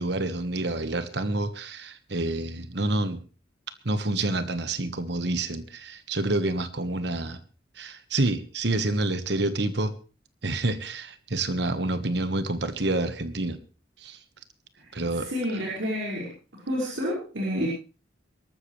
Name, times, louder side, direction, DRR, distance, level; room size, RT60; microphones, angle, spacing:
voice 1, 0.0-3.2 3.8-7.4 7.8-9.9 10.4-13.6 14.0-14.2 14.9-15.3, right 2 dB, 60° right, 11 dB, 1.4 m, -28 dB
voice 2, 15.2-16.3 16.7-17.7, equal, 90° right, -5 dB, 5.7 m, -29 dB
22.5 x 13.0 x 3.3 m, 0.35 s
head